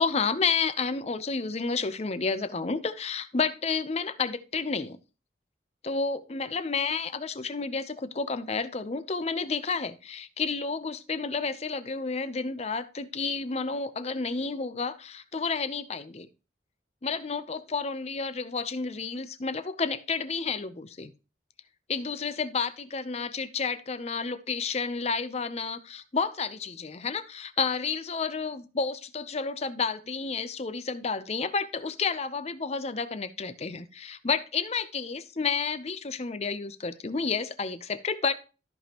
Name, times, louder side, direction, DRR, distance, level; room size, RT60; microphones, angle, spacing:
voice 1, 0.0-5.0 5.8-16.3 17.0-21.1 21.9-38.3, left 4 dB, 35° left, 0.6 m, -31 dB
13.5 x 5.1 x 2.9 m
head